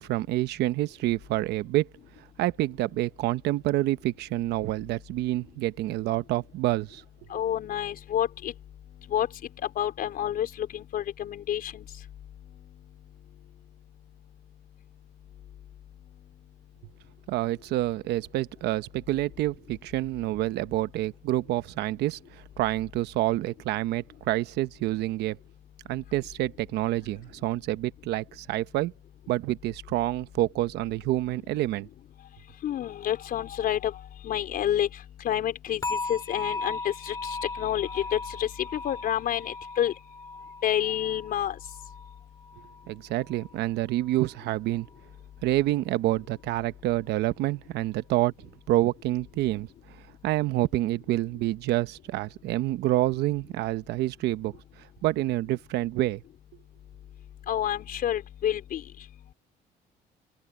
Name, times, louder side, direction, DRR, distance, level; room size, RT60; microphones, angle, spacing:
voice 1, 0.0-1.9 2.4-7.0 17.3-25.4 25.9-28.9 29.3-31.9 42.9-44.9 45.4-48.3 48.7-56.2, right 16 dB, 80° right, 1.0 m, -28 dB
voice 2, 7.3-8.5 9.1-9.3 9.8-11.8 32.6-33.9 34.2-34.9 35.2-39.9 40.6-41.6 57.5-58.8, left 10 dB, 60° left, 4.5 m, -29 dB
sound 1, 35.8-42.9 43.2-43.6 44.1-44.2, left 3 dB, 20° left, 4.4 m, -38 dB
open air
cardioid pair, 110°, 17 cm